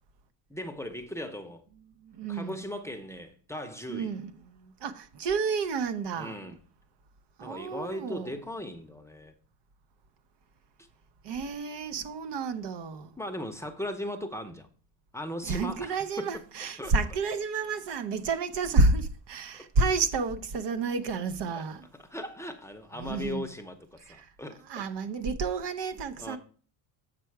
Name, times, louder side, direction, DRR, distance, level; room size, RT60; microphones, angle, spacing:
voice 1, 0.5-1.6 2.3-4.1 6.1-6.6 7.4-9.3 13.2-14.7 15.1-16.4 16.8-16.9 19.5-19.6 21.6-21.7 21.9-24.8 26.2-26.4, left 1 dB, 5° left, 0.7 m, -38 dB
voice 2, 2.0-2.6 3.9-6.4 7.4-8.3 11.2-13.1 15.4-21.9 23.0-23.4 24.1-24.3 24.7-26.4, right 3 dB, 55° right, 0.8 m, -30 dB
7.6 x 4.6 x 4.6 m
cardioid pair, 110°, 49 cm